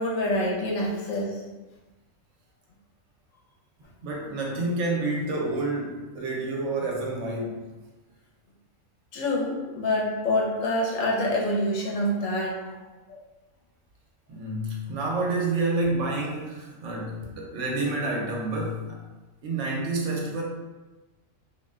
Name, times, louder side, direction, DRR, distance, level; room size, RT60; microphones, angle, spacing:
voice 1, 0.0-1.4 9.1-12.6 13.1-13.2, left 1 dB, 75° left, -3 dB, 1.0 m, -26 dB
voice 2, 4.0-7.6 14.3-19.0 19.4-20.4, right 2 dB, 70° right, -2 dB, 0.9 m, -29 dB
2.5 x 2.1 x 3.4 m, 1.2 s
omnidirectional pair, 1.4 m